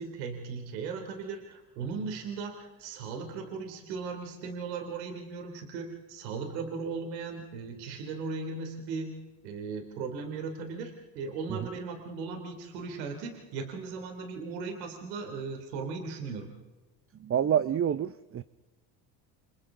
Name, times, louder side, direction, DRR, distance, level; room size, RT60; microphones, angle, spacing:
voice 1, 0.0-9.2 9.4-16.5, right 4 dB, 90° right, 4 dB, 3.1 m, -37 dB
voice 2, 17.2-18.4, right 9 dB, 30° right, 15 dB, 0.7 m, -27 dB
29.0 x 27.5 x 3.8 m, 1.2 s
supercardioid pair, 80°, 49 cm